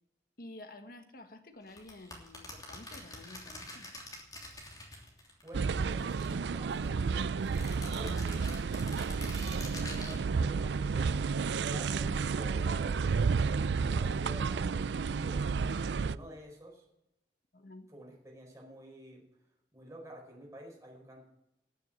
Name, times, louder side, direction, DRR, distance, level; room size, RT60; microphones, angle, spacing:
voice 1, 0.4-3.9 11.0-11.2 17.5-17.9, left 2 dB, 55° left, 7 dB, 1.5 m, -50 dB
sound 1, 1.7-5.5 5.8-6.9 7.4-10.2, left 1 dB, 20° left, 3.1 m, -46 dB
voice 2, 5.4-7.3 7.9-8.4 9.6-13.0 13.8-15.5 15.9-16.8 17.9-19.2 19.7-21.2, equal, 20° right, -1 dB, 4.6 m, -50 dB
sound 2, 5.5-16.2, right 5 dB, 80° right, 0.4 m, -31 dB
15.5 x 7.4 x 8.7 m, 0.86 s
head